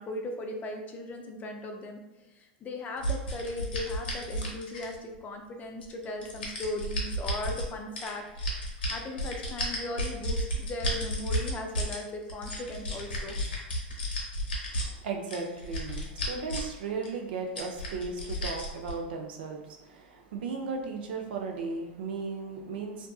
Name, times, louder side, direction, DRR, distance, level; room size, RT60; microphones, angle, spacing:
voice 1, 0.0-2.0 2.6-8.2 8.9-13.3, left 1 dB, 30° left, 3 dB, 0.4 m, -37 dB
sound 1, 3.0-5.1 5.8-7.7 8.0-12.0 12.3-14.8 15.3-16.8 17.0-17.1 17.6-18.9, equal, 90° left, 0.8 m, -32 dB
voice 2, 14.8-23.1, right 4 dB, 75° right, 3 dB, 0.4 m, -36 dB
2.5 x 2.4 x 2.3 m, 1.0 s
hypercardioid pair, 105°, 5 cm